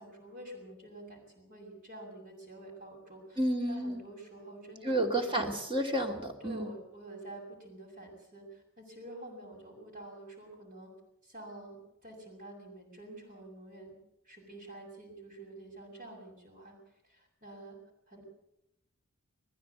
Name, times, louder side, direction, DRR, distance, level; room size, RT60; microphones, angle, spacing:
voice 1, 0.0-3.4 3.7-5.4 6.4-10.9 11.2-14.0 14.2-16.8 17.0-17.8 18.1-18.2, right 1 dB, 45° right, -2 dB, 6.5 m, -48 dB
voice 2, 3.4-4.0 4.8-6.7, right 1 dB, 25° right, 3 dB, 2.8 m, -31 dB
21.0 x 15.0 x 8.3 m, 0.82 s
head